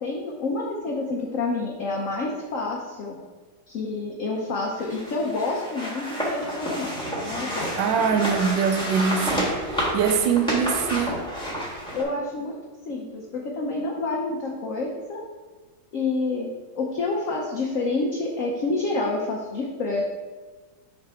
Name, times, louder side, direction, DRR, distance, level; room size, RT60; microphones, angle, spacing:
voice 1, 0.0-3.2 3.7-7.7 11.9-12.6 12.9-15.2 15.9-20.0, left 3 dB, 60° left, -2 dB, 0.9 m, -28 dB
sound 1, 4.8-12.0, equal, 5° left, 1.1 m, -29 dB
voice 2, 7.8-11.2, right 6 dB, 85° right, 4 dB, 1.3 m, -23 dB
5.9 x 5.5 x 3.5 m, 1.4 s
omnidirectional pair, 1.9 m